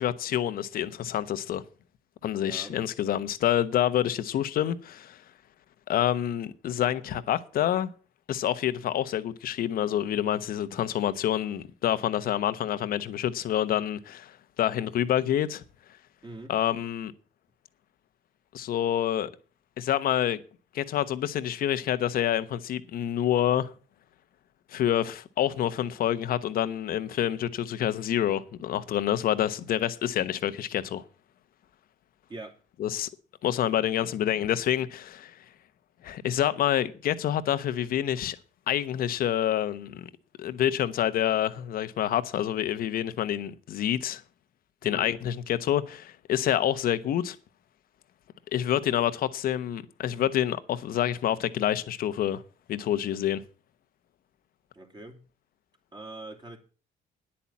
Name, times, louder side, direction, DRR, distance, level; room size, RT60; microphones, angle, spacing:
voice 1, 0.0-1.6 2.2-5.2 5.9-7.9 8.3-15.6 16.5-17.1 18.5-19.3 19.8-20.4 20.7-23.7 24.7-31.0 32.8-33.1 33.4-35.4 36.0-38.4 38.7-40.1 40.4-44.2 44.8-47.4 48.5-52.4 52.7-53.4, left 11 dB, 60° left, 1.0 m, -27 dB
voice 2, 2.3-2.8 16.2-16.5 32.3-32.6 44.8-45.1 54.7-55.2 55.9-56.6, right 2 dB, 25° right, 3.0 m, -43 dB
10.0 x 8.7 x 7.2 m
cardioid pair, 110°, 17 cm